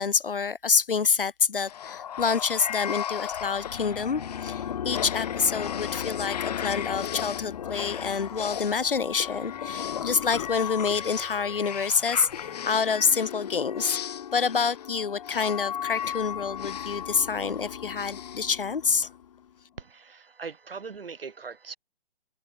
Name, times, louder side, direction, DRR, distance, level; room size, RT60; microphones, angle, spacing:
voice 1, 0.0-14.0 14.3-19.1, left 5 dB, 60° left, 3.6 m, -27 dB
sound 1, 1.6-19.2, left 9 dB, 40° left, 1.6 m, -35 dB
sound 2, 3.9-12.7, right 1 dB, ahead, 3.9 m, -52 dB
voice 2, 19.8-21.8, right 5 dB, 65° right, 2.7 m, -40 dB
open air
figure-of-eight pair, 140°, 31 cm